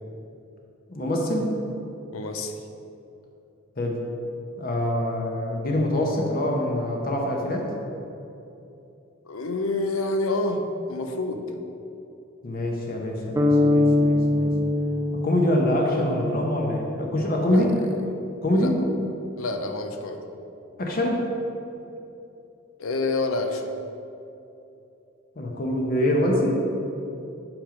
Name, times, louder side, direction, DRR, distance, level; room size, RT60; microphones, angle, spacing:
voice 1, 0.9-1.5 3.8-4.0 4.6-7.7 12.4-14.5 15.1-17.7 18.4-18.8 20.8-21.2 25.4-26.6, left 1 dB, 45° left, 0 dB, 0.8 m, -25 dB
voice 2, 2.1-2.6 9.2-11.5 17.5-17.7 18.5-18.7 19.4-20.2 22.8-23.7, left 2 dB, 85° left, 6 dB, 0.6 m, -28 dB
sound 1, 13.4-17.3, left 2 dB, 15° right, 0.3 m, -23 dB
6.0 x 5.1 x 5.1 m, 2.8 s
head